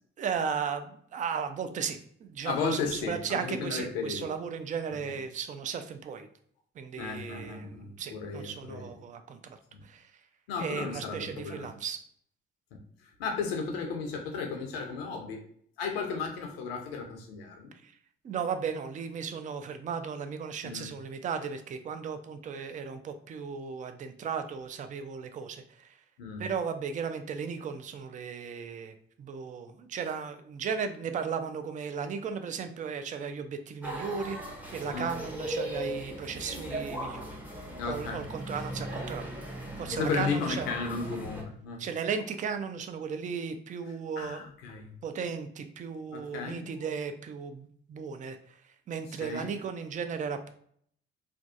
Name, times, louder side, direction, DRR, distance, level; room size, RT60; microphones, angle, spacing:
voice 1, 0.2-6.3 6.8-10.1 10.6-12.0 17.8-17.9 18.2-26.0 26.4-34.4 34.7-37.4 37.9-39.3 39.8-40.7 41.8-44.4 45.0-50.5, right 6 dB, 25° right, 8 dB, 0.3 m, -35 dB
voice 2, 2.4-4.3 7.0-8.9 9.7-9.8 10.5-11.7 12.7-15.4 15.8-17.7 20.6-20.9 26.2-26.4 34.9-35.1 37.8-38.2 38.7-38.8 39.9-41.8 44.2-44.9 46.1-46.7 49.2-49.5, left 5 dB, 85° left, 2 dB, 0.5 m, -34 dB
sound 1, 33.8-41.4, equal, 5° right, 0.7 m, -38 dB
2.5 x 2.2 x 2.4 m, 0.63 s
hypercardioid pair, 45°, 29 cm